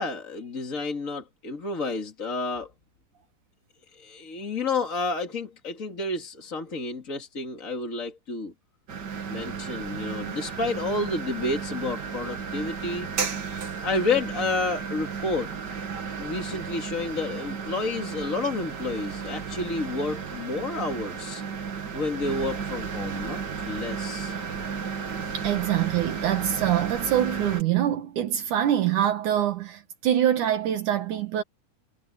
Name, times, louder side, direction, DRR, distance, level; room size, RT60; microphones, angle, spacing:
voice 1, 0.0-2.7 3.9-8.5 9.3-13.1 13.8-15.5 16.2-21.4 21.9-24.4, left 3 dB, 30° left, 2.2 m, -30 dB
sound 1, 8.9-27.6, right 6 dB, 45° right, 1.7 m, -33 dB
voice 2, 25.3-31.4, right 11 dB, 70° right, 2.8 m, -24 dB
omnidirectional pair, 3.7 m